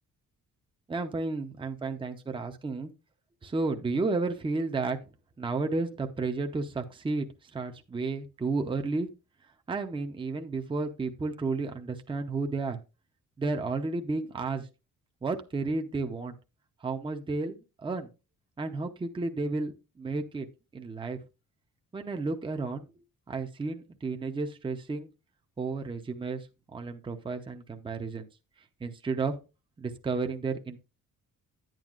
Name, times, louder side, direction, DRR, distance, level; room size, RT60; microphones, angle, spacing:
voice 1, 0.9-2.9 3.4-5.0 5.4-7.3 7.5-9.1 9.7-12.8 13.4-14.7 15.2-16.4 16.8-18.1 18.6-20.5 20.7-21.2 21.9-22.9 23.3-25.1 25.6-26.5 26.7-28.3 28.8-29.4 29.8-30.8, right 3 dB, 15° right, 5 dB, 0.7 m, -32 dB
10.5 x 9.1 x 2.4 m, 0.28 s
cardioid pair, 140°, 35 cm